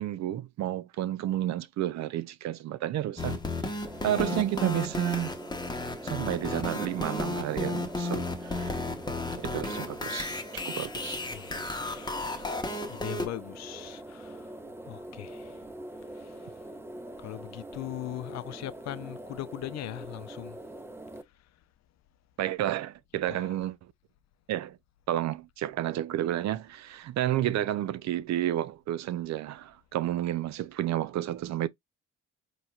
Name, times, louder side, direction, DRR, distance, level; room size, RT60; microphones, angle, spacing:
voice 1, 0.0-3.4 3.6-5.3 6.0-8.8 9.4-11.2 22.4-23.8 24.5-24.8 25.1-31.7, right 13 dB, 65° right, 0.5 m, -31 dB
sound 1, 3.2-13.3, left 2 dB, 15° left, 0.9 m, -34 dB
sound 2, 3.9-21.2, right 1 dB, 10° right, 0.5 m, -43 dB
voice 2, 11.3-14.5 14.8-15.7 16.1-16.6 17.2-20.6 23.3-23.6, left 14 dB, 60° left, 0.5 m, -40 dB
4.2 x 3.1 x 2.3 m
cardioid pair, 90°, 30 cm